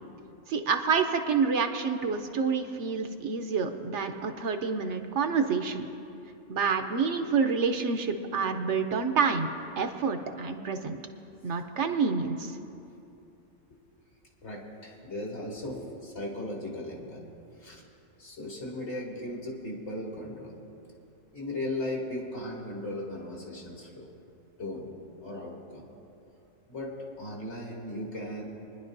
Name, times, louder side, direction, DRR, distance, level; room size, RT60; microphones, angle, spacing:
voice 1, 0.5-5.9 6.5-9.5 9.8-11.0 11.4-12.6, right 5 dB, 65° right, 6 dB, 1.0 m, -28 dB
voice 2, 14.4-17.3 17.6-17.8 18.2-20.6 21.3-24.1 24.6-24.9 25.2-25.9 26.7-28.7, left 1 dB, 60° left, -3 dB, 2.3 m, -37 dB
27.5 x 10.5 x 2.6 m, 2.7 s
omnidirectional pair, 1.4 m